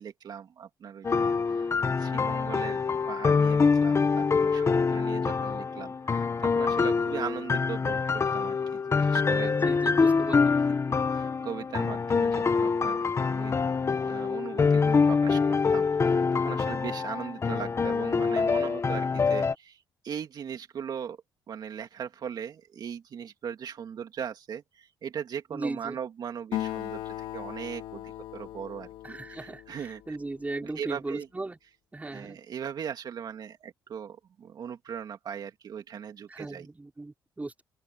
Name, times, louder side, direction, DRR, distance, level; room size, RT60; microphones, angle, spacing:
voice 1, 0.0-13.6 14.0-21.2 21.5-30.2 30.6-31.3 32.1-36.7, right 8 dB, 60° right, 2.6 m, -39 dB
sound 1, 1.0-19.5, left 5 dB, 35° left, 1.5 m, -25 dB
voice 2, 9.3-10.6 25.5-26.0 29.0-31.6 31.9-32.4 36.3-37.6, right 2 dB, 20° right, 5.0 m, -37 dB
Acoustic guitar, 26.5-30.3, left 13 dB, 90° left, 2.6 m, -38 dB
open air
cardioid pair, 85°, 8 cm